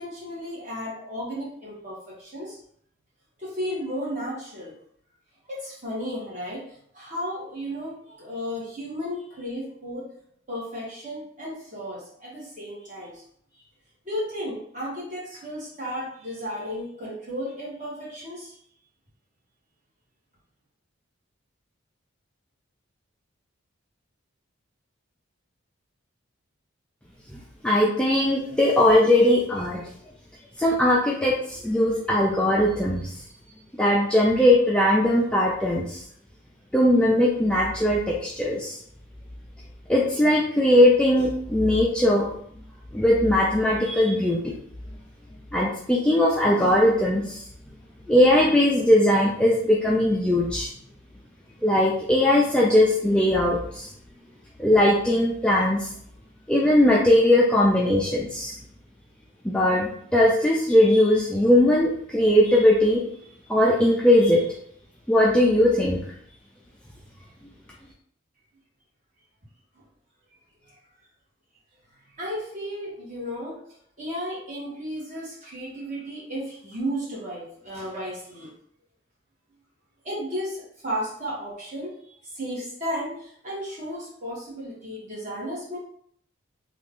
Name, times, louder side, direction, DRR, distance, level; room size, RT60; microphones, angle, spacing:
voice 1, 0.0-2.6 3.4-4.7 5.5-6.7 6.9-10.1 10.5-13.2 14.0-18.5 69.8-69.9 70.6-70.8 72.2-73.6 74.0-78.5 80.0-85.8, equal, 40° right, -6 dB, 1.5 m, -34 dB
voice 2, 27.3-29.9 30.6-33.1 33.8-36.0 36.7-38.8 39.9-42.3 42.9-44.5 45.5-47.4 48.1-50.7 51.6-53.9 54.6-55.9 56.5-58.6 59.4-63.0 63.5-64.5 65.1-66.0, left 1 dB, 5° left, -4 dB, 0.3 m, -20 dB
3.0 x 2.4 x 3.6 m, 0.64 s
head